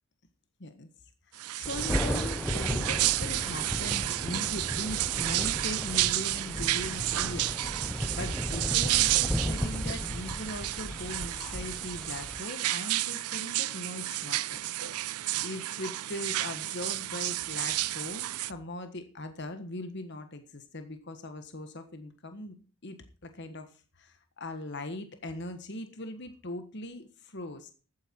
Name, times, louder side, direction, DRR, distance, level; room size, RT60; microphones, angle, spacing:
voice 1, 1.3-22.6 22.8-27.7, left 1 dB, 50° left, 8 dB, 1.5 m, -40 dB
sound 1, 1.4-18.5, right 16 dB, 90° right, 0.5 m, -31 dB
Thunder, 1.6-12.4, equal, 5° left, 0.6 m, -35 dB
14.0 x 9.3 x 4.5 m, 0.37 s
head